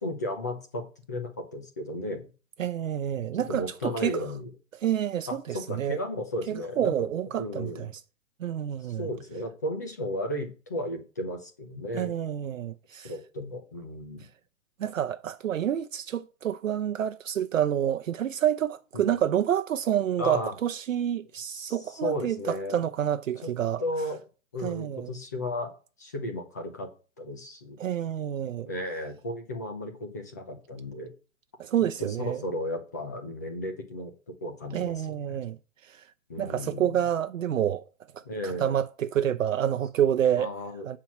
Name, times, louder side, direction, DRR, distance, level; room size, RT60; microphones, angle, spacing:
voice 1, 0.0-2.3 3.2-4.5 5.3-7.1 7.4-7.8 9.0-12.1 13.0-14.3 18.9-19.1 20.2-20.5 21.4-22.8 23.8-24.2 24.5-25.7 26.0-26.9 27.2-27.8 28.7-31.1 32.0-35.4 36.3-37.0 38.2-38.7 40.3-41.0, left 1 dB, 15° left, 0.6 m, -34 dB
voice 2, 2.6-4.2 4.7-6.0 6.5-7.9 8.4-9.1 11.9-13.1 14.8-23.8 24.6-25.1 27.8-28.7 31.6-32.4 34.7-36.1 36.4-37.9 38.1-40.5 40.8-41.0, right 10 dB, 65° right, 0.8 m, -28 dB
8.8 x 4.6 x 7.1 m
hypercardioid pair, 175°, 41 cm